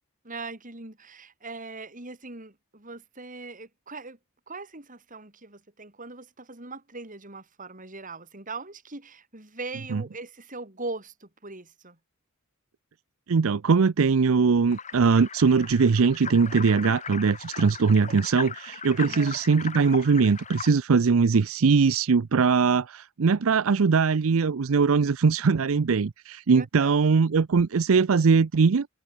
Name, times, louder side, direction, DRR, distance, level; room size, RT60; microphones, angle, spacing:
voice 1, 0.2-4.2 4.5-12.0 19.0-19.3 26.5-26.9, right 3 dB, 40° right, 4.3 m, -40 dB
voice 2, 13.3-28.9, right 5 dB, 70° right, 0.5 m, -21 dB
sound 1, 14.7-20.7, left 6 dB, 35° left, 7.2 m, -38 dB
head